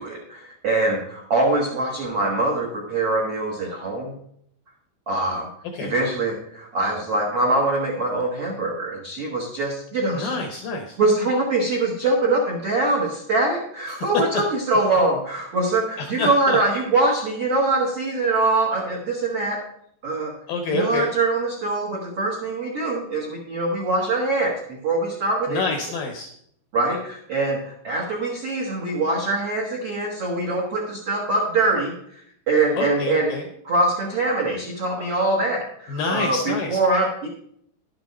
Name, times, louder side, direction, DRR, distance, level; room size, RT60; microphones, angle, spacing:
voice 1, 0.0-4.2 5.1-5.5 5.8-10.3 11.0-19.6 20.0-20.3 20.7-25.6 26.7-32.2 32.5-33.4 33.6-37.3, right 2 dB, 70° right, -2 dB, 1.3 m, -23 dB
voice 2, 10.1-11.0 13.9-14.1 16.0-16.6 20.5-21.1 25.5-26.3 32.8-33.5 35.9-36.8, left 3 dB, 80° left, 4 dB, 2.0 m, -27 dB
11.5 x 8.7 x 4.2 m, 0.70 s
omnidirectional pair, 5.1 m